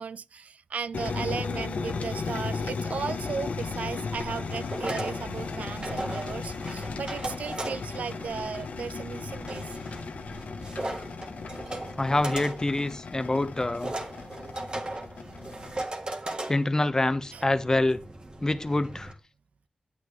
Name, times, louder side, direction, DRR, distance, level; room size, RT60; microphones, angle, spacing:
voice 1, 0.0-9.7 15.5-15.6 17.3-17.4, right 6 dB, 80° right, 0.4 m, -36 dB
sound 1, 0.9-15.8, left 4 dB, 80° left, 0.9 m, -36 dB
sound 2, 4.2-19.1, right 2 dB, 40° right, 1.6 m, -38 dB
voice 2, 12.0-13.9 16.5-18.0 18.4-19.1, left 2 dB, 25° left, 1.0 m, -26 dB
8.8 x 8.2 x 3.2 m
cardioid pair, 55°, 2 cm